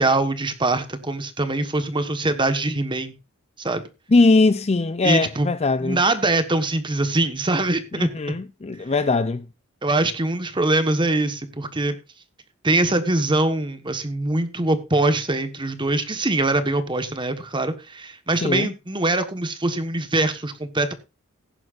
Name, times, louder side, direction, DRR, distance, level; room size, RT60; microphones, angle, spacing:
voice 1, 0.0-3.1 3.6-3.8 5.0-5.5 5.8-8.3 9.8-12.0 12.6-20.9, right 2 dB, 20° right, 1.3 m, -23 dB
voice 2, 4.1-6.0 7.9-9.5 18.4-18.7, left 3 dB, 30° left, 0.5 m, -20 dB
16.0 x 10.5 x 2.5 m
head